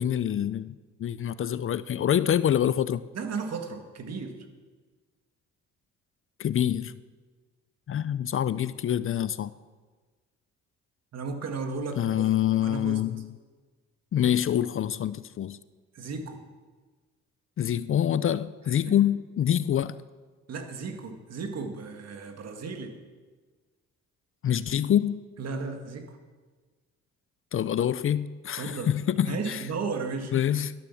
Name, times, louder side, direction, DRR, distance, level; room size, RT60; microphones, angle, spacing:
voice 1, 0.0-3.0 6.4-7.0 7.9-9.5 12.0-13.3 14.1-15.6 17.6-20.0 24.4-25.2 27.5-29.6 30.3-30.7, left 10 dB, 45° left, 0.5 m, -26 dB
voice 2, 3.1-4.5 11.1-13.0 15.9-16.4 18.7-19.0 20.5-23.0 25.4-26.2 28.5-28.9 29.2-30.3, right 4 dB, 55° right, 2.0 m, -35 dB
12.5 x 10.5 x 7.2 m
cardioid pair, 90°, 30 cm